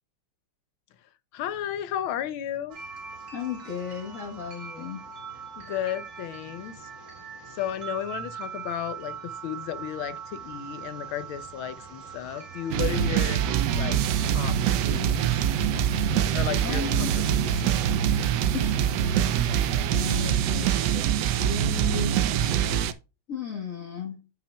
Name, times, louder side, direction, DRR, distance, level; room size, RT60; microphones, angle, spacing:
voice 1, 1.0-2.8 5.6-6.9 7.5-13.4 13.8-14.6 14.9-15.5 16.3-18.0, left 10 dB, 85° left, 1.6 m, -34 dB
sound 1, 2.7-19.4, right 6 dB, 40° right, 2.4 m, -42 dB
voice 2, 3.3-5.0 16.6-17.1 18.5-18.9 19.9-21.0 21.4-22.2 23.3-24.2, left 7 dB, 45° left, 1.7 m, -35 dB
sound 2, 12.7-22.9, right 9 dB, 70° right, 1.1 m, -24 dB
9.9 x 5.7 x 2.3 m
omnidirectional pair, 2.2 m